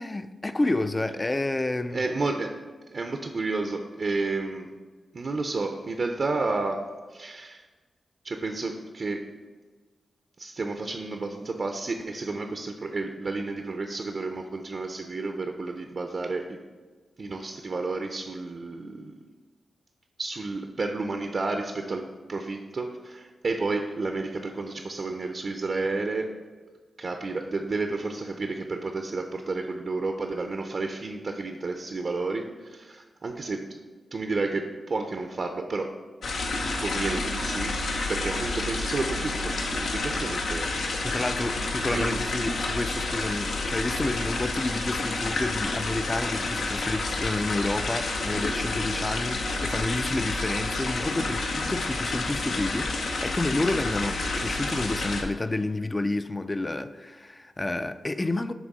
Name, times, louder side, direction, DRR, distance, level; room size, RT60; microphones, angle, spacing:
voice 1, 0.0-2.0 41.0-58.5, left 2 dB, 25° left, 0.4 m, -30 dB
voice 2, 1.9-2.6 2.9-4.7 5.1-7.7 8.2-9.3 10.4-16.6 17.2-19.1 20.2-26.3 27.0-33.8 34.1-35.9 36.5-37.8 38.1-41.1 41.9-42.2, right 3 dB, 55° right, 0.5 m, -31 dB
sound 1, 36.2-55.2, left 3 dB, 80° left, 0.8 m, -29 dB
6.0 x 3.5 x 5.2 m
cardioid pair, 55°, 0 cm